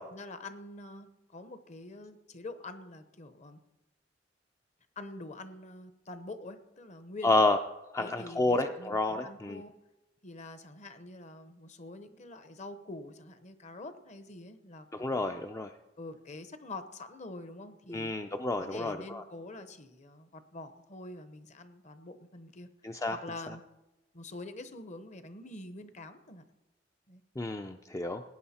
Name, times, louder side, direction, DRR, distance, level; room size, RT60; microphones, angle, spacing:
voice 1, 0.1-3.6 5.0-7.4 8.0-9.7 10.2-15.4 16.0-18.1 18.6-22.7 23.1-23.6 24.1-26.4 27.1-27.2, left 2 dB, 40° left, 11 dB, 0.9 m, -45 dB
voice 2, 7.2-7.6 7.9-9.6 14.9-15.7 17.9-19.2 22.8-23.2 27.4-28.2, left 2 dB, 15° left, 6 dB, 0.4 m, -29 dB
18.0 x 9.5 x 4.3 m, 0.98 s
head